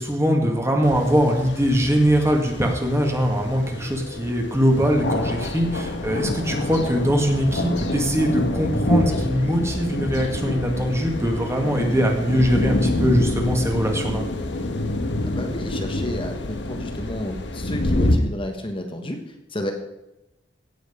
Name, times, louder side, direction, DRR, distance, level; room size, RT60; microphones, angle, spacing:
voice 1, 0.0-14.2, equal, 15° right, 2 dB, 1.9 m, -22 dB
sound 1, 0.8-18.2, left 2 dB, 75° left, 1.3 m, -27 dB
voice 2, 15.2-19.7, left 1 dB, 30° left, 3 dB, 1.3 m, -31 dB
16.5 x 8.0 x 5.1 m, 0.92 s
head